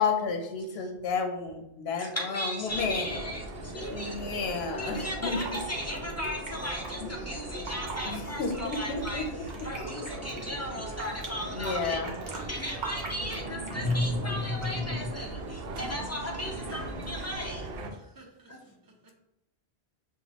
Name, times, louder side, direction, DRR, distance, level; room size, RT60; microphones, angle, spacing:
voice 1, 0.0-3.1 3.9-5.4 8.1-9.4 11.5-12.1, left 5 dB, 80° left, 0.8 m, -31 dB
voice 2, 2.0-12.0 12.5-17.7 18.5-18.8, left 1 dB, 20° left, 0.5 m, -37 dB
sound 1, 2.7-17.9, right 2 dB, 75° right, 0.8 m, -39 dB
voice 3, 3.8-5.1 11.8-12.5 16.4-16.8 18.0-19.1, right 3 dB, 25° right, 0.6 m, -54 dB
Fill (with liquid), 4.9-6.9 7.5-8.1 8.5-11.3 11.6-14.1 14.6-14.9, right 4 dB, 50° right, 0.9 m, -42 dB
sound 2, 9.7-11.5 13.7-15.1, left 2 dB, 55° left, 1.0 m, -33 dB
5.7 x 2.3 x 2.9 m
omnidirectional pair, 1.0 m